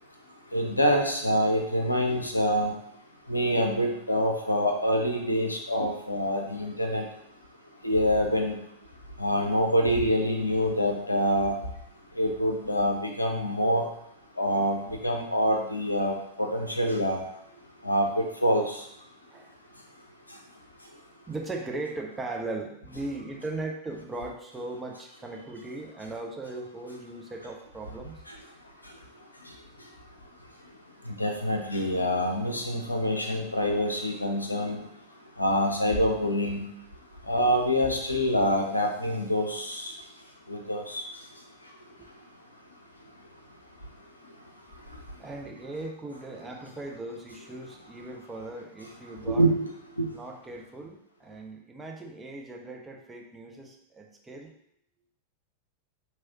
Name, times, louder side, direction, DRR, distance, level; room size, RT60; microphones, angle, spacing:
voice 1, 0.5-2.7 3.3-7.0 7.8-8.6 9.2-11.6 12.2-13.9 14.4-17.2 17.8-18.7 31.2-34.8 35.4-36.6 37.3-39.9 40.5-41.0 49.3-49.7 50.0-50.1, equal, 85° left, 2 dB, 0.6 m, -26 dB
voice 2, 17.5-17.9 19.3-19.5 21.3-28.2 45.2-49.4 50.1-54.5, right 2 dB, 15° right, 1 dB, 0.7 m, -38 dB
4.7 x 3.1 x 2.9 m, 0.74 s
figure-of-eight pair, 90°, 0 cm